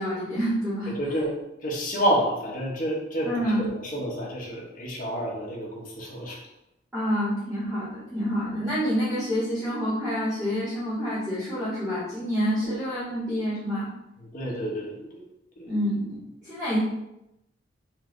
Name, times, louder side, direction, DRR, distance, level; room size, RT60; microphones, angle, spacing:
voice 1, 0.0-1.2 3.2-3.6 6.9-13.9 15.6-16.8, equal, 5° right, -10 dB, 1.4 m, -28 dB
voice 2, 0.9-6.4 12.6-12.7 14.2-15.2 15.6-15.7, equal, 45° left, -3 dB, 1.1 m, -29 dB
4.4 x 2.5 x 3.3 m, 0.87 s
head